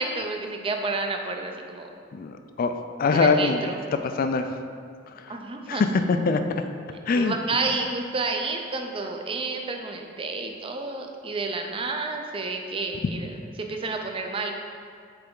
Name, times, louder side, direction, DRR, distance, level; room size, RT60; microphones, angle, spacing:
voice 1, 0.0-1.9 3.1-3.9 5.3-5.8 6.9-14.5, right 3 dB, 30° right, 4 dB, 0.5 m, -30 dB
voice 2, 2.1-3.6 3.9-4.5 5.7-6.4 7.1-7.3, left 4 dB, 45° left, 7 dB, 0.3 m, -23 dB
7.9 x 3.4 x 3.8 m, 2.2 s
head